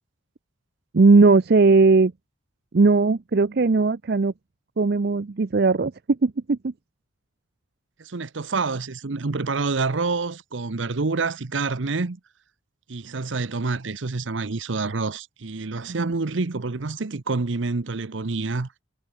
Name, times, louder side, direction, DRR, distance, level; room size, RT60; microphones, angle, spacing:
voice 1, 0.9-2.1 2.7-4.3 4.8-6.7 15.9-16.1, right 3 dB, 50° right, 0.5 m, -18 dB
voice 2, 8.0-12.2 12.9-18.8, right 3 dB, 70° right, 0.9 m, -27 dB
head